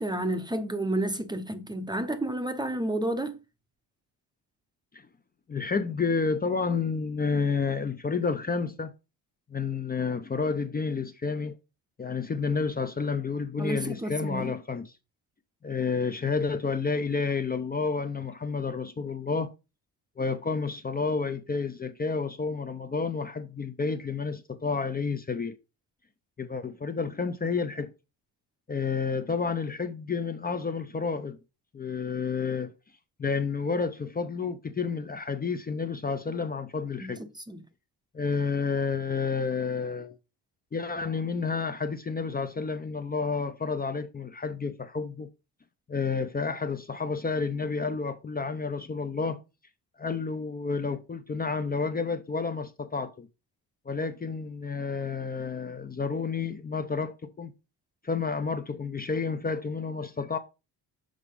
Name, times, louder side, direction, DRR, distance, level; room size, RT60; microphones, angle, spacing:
voice 1, 0.0-3.4 13.6-14.5 37.0-37.1 37.5-37.6, right 1 dB, 10° right, 0.8 m, -30 dB
voice 2, 5.5-8.9 9.5-11.6 12.0-14.9 15.6-19.5 20.2-25.6 26.4-27.9 28.7-31.4 31.7-32.7 33.2-37.2 38.1-40.2 40.7-45.3 45.9-49.4 50.0-53.3 53.9-57.5 58.0-60.4, left 5 dB, 25° left, 0.7 m, -30 dB
6.6 x 4.9 x 5.2 m
cardioid pair, 125°, 40 cm